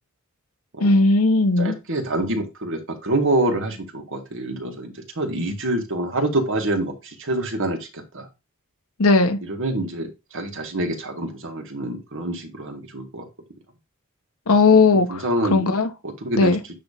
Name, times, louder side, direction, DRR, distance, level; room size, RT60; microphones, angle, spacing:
voice 1, 0.8-1.8 9.0-9.4 14.5-15.2 15.5-15.9 16.4-16.6, left 3 dB, 70° left, 1.2 m, -17 dB
voice 2, 1.6-8.3 9.5-13.3 15.1-15.7 16.0-16.7, right 1 dB, 65° right, 1.8 m, -26 dB
9.3 x 3.2 x 5.0 m
head